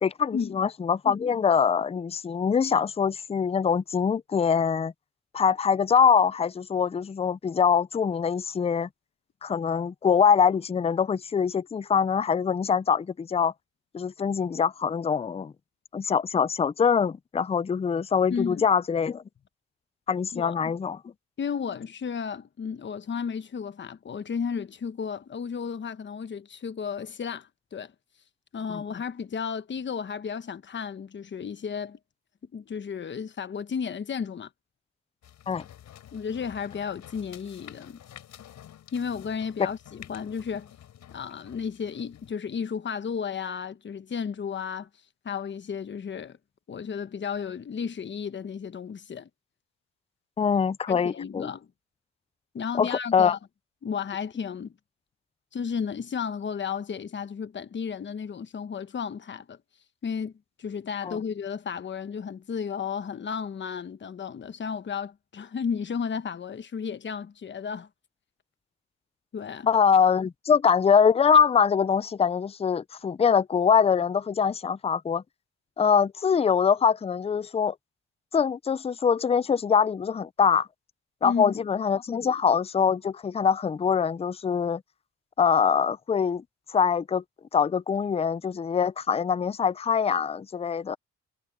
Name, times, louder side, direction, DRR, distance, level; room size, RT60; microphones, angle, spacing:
voice 1, 0.0-4.9 5.3-8.9 9.4-13.5 13.9-15.5 15.9-19.2 20.1-21.0 28.7-28.8 35.5-35.6 50.4-51.5 52.8-53.3 61.0-61.2 69.7-75.2 75.8-77.7 78.3-80.7 81.2-84.8 85.4-86.4 86.7-87.2 87.5-91.0, left 6 dB, 20° left, 0.5 m, -23 dB
voice 2, 18.3-18.7 20.3-20.6 21.4-27.9 28.5-32.0 32.5-34.5 36.1-38.0 38.9-40.7 41.1-44.9 45.2-46.4 46.7-49.3 50.9-51.7 52.5-53.4 53.8-54.7 55.5-59.6 60.0-60.3 60.6-67.9 69.3-69.7 81.2-81.6 90.8-90.9, left 6 dB, 40° left, 1.1 m, -33 dB
sound 1, 35.2-42.3, left 11 dB, 70° left, 4.2 m, -50 dB
cardioid pair, 90°, 30 cm